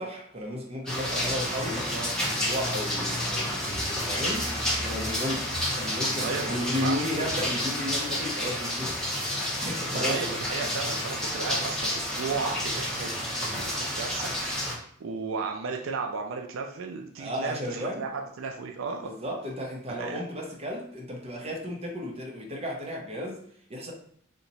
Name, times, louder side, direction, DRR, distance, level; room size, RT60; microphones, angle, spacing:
voice 1, 0.0-9.3 9.7-10.2 10.5-10.7 17.2-18.1 19.0-23.4 23.7-23.9, equal, 30° right, -1 dB, 0.7 m, -34 dB
sound 1, 0.9-14.7, left 1 dB, 5° left, 0.7 m, -30 dB
voice 2, 6.2-7.3 9.9-19.1 19.9-20.2, right 4 dB, 80° right, 2 dB, 0.4 m, -35 dB
2.8 x 2.2 x 3.9 m, 0.64 s
head